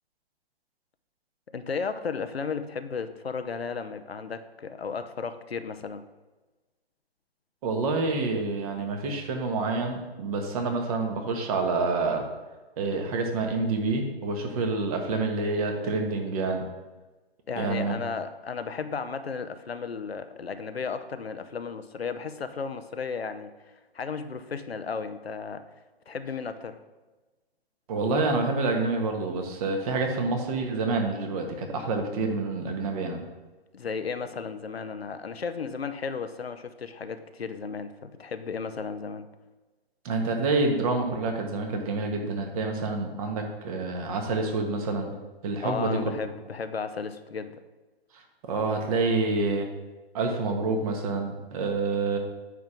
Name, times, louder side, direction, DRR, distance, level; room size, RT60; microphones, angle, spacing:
voice 1, 1.5-6.0 17.5-23.5 23.9-25.6 26.1-26.8 33.7-39.3 45.6-47.6, left 5 dB, 80° left, 10 dB, 0.8 m, -34 dB
voice 2, 7.6-12.2 12.8-16.6 17.6-17.9 27.9-33.2 40.0-45.1 45.4-46.0 48.4-49.7 50.1-52.2, right 3 dB, 35° right, 4 dB, 1.5 m, -27 dB
9.3 x 3.7 x 6.0 m, 1.2 s
figure-of-eight pair, 130°, 31 cm